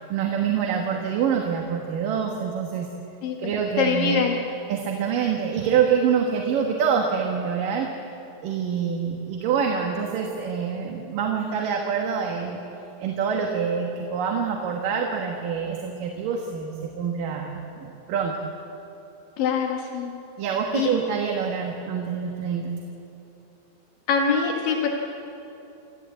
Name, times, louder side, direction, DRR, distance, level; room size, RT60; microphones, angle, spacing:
voice 1, 0.0-2.9 3.4-4.3 4.7-7.9 8.4-12.6 13.0-18.4 20.4-22.8, right 7 dB, 75° right, 1 dB, 3.0 m, -26 dB
voice 2, 3.8-4.4 19.4-20.1 20.7-20.9 24.1-24.9, left 6 dB, 80° left, 1 dB, 3.2 m, -23 dB
27.0 x 14.0 x 8.4 m, 2.9 s
omnidirectional pair, 3.9 m